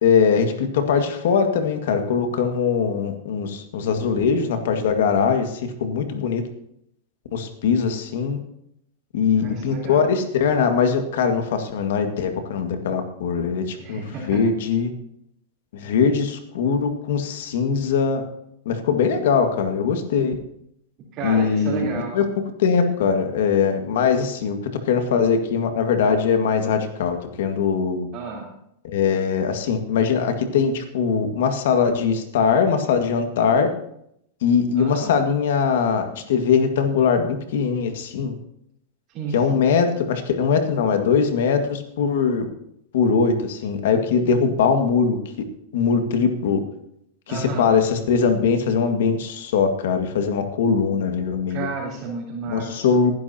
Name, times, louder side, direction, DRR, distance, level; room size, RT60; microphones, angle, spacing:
voice 1, 0.0-6.4 7.3-8.4 9.1-14.9 15.7-18.2 18.7-20.4 21.2-22.2 22.6-24.6 24.9-28.1 28.8-33.7 34.4-38.3 39.3-42.4 42.9-45.2 45.7-46.6 47.3-51.7 52.5-53.1, left 6 dB, 75° left, 6 dB, 1.9 m, -21 dB
voice 2, 9.3-10.2 13.8-14.4 15.8-16.0 21.1-22.2 28.1-28.6 34.7-35.2 39.1-39.6 47.3-47.8 51.5-52.9, right 4 dB, 35° right, -5 dB, 3.7 m, -32 dB
19.5 x 10.5 x 2.9 m, 0.74 s
supercardioid pair, 145°, 0 cm